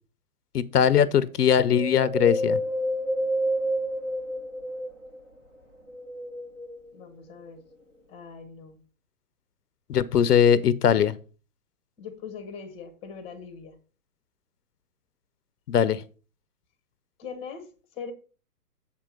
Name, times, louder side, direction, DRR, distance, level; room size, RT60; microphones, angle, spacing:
voice 1, 0.5-2.6 9.9-11.2 15.7-16.0, left 8 dB, 85° left, 0.7 m, -20 dB
Wind, 1.7-5.3 5.8-7.0 7.6-7.7, equal, 10° right, 0.4 m, -29 dB
voice 2, 6.9-7.6 8.1-8.8 12.0-13.7 17.2-17.6 17.9-18.1, left 6 dB, 15° left, 0.9 m, -41 dB
7.2 x 4.6 x 5.1 m
hypercardioid pair, 135°, 45 cm